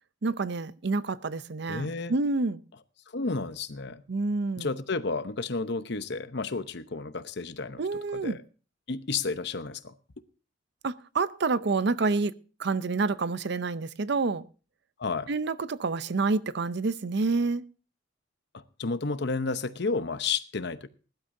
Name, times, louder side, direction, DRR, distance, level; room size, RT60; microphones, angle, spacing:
voice 1, 0.2-2.6 4.1-4.7 7.8-8.4 10.8-12.3 12.6-14.4 15.3-17.6, right 3 dB, 60° right, 0.6 m, -28 dB
voice 2, 1.7-2.1 3.1-4.0 4.6-7.8 8.1-8.4 8.9-9.9 15.0-15.3 18.8-20.9, left 4 dB, 60° left, 0.8 m, -31 dB
20.5 x 12.0 x 2.7 m
head